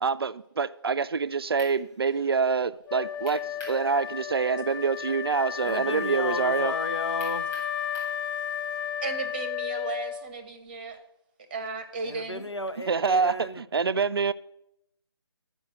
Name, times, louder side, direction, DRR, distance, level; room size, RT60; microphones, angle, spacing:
voice 1, 0.0-6.7 12.9-14.3, right 5 dB, 60° right, 0.4 m, -26 dB
sound 1, 1.6-1.8 3.3-3.8 4.2-4.3 7.2-8.2, left 1 dB, 10° left, 1.6 m, -44 dB
Wind instrument woodwind instrument, 2.9-10.4, left 9 dB, 50° left, 1.2 m, -32 dB
voice 2, 5.6-8.0 12.0-13.6, left 2 dB, 85° left, 0.9 m, -35 dB
voice 3, 9.0-11.0 11.5-12.4, right 4 dB, 20° right, 0.8 m, -35 dB
9.8 x 5.1 x 6.4 m
figure-of-eight pair, 155°, 14 cm